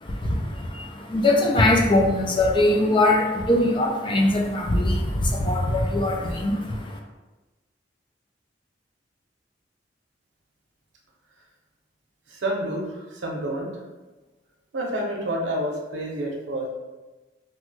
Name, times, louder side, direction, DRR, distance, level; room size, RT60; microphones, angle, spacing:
voice 1, 0.0-7.0, left 1 dB, 25° left, 2 dB, 0.3 m, -22 dB
voice 2, 12.3-13.7 14.7-16.7, right 1 dB, 80° right, -1 dB, 0.6 m, -29 dB
3.0 x 2.2 x 3.1 m, 1.2 s
head